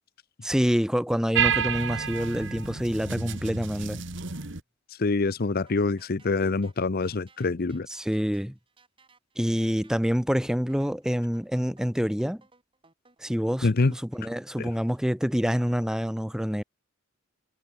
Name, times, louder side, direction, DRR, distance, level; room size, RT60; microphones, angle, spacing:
voice 1, 0.4-4.0 7.9-8.5 9.4-12.4 13.2-16.6, equal, 5° right, 1.0 m, -27 dB
sound 1, 1.3-4.6, right 7 dB, 60° right, 2.0 m, -29 dB
voice 2, 4.9-7.9 13.6-13.9 14.6-14.7, left 3 dB, 45° left, 0.6 m, -25 dB
sound 2, 5.7-14.2, right 4 dB, 25° right, 7.6 m, -61 dB
head